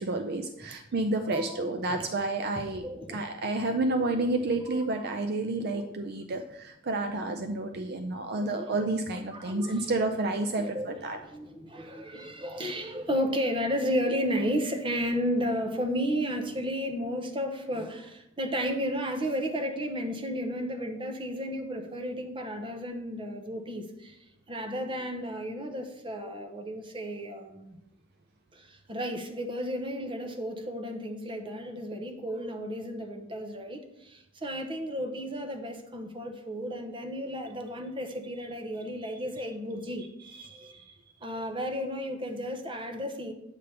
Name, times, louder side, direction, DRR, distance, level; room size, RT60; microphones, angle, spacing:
voice 1, 0.0-11.2 40.4-40.9, right 2 dB, 55° right, 6 dB, 0.5 m, -30 dB
voice 2, 1.2-2.1 2.5-3.3 3.7-4.5 5.0-5.2 5.6-6.1 7.5-7.6 8.0-8.8 9.3-10.2 10.6-24.2 24.5-27.8 28.5-40.1 40.5-40.7 41.2-43.3, equal, 25° right, 5 dB, 0.8 m, -33 dB
8.2 x 3.4 x 5.6 m, 0.84 s
head